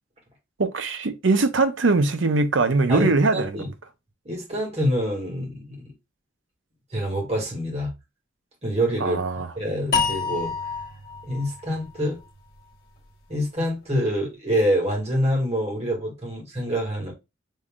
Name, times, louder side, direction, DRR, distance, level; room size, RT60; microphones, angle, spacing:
voice 1, 0.6-3.7 9.0-9.5, right 3 dB, 80° right, 0.7 m, -21 dB
voice 2, 2.9-3.7 4.3-5.8 6.9-7.9 8.6-9.2 9.6-10.5 11.2-12.2 13.3-17.1, equal, 35° right, 2.0 m, -26 dB
sound 1, 9.9-13.1, left 5 dB, 50° left, 1.3 m, -29 dB
5.5 x 3.3 x 2.4 m
head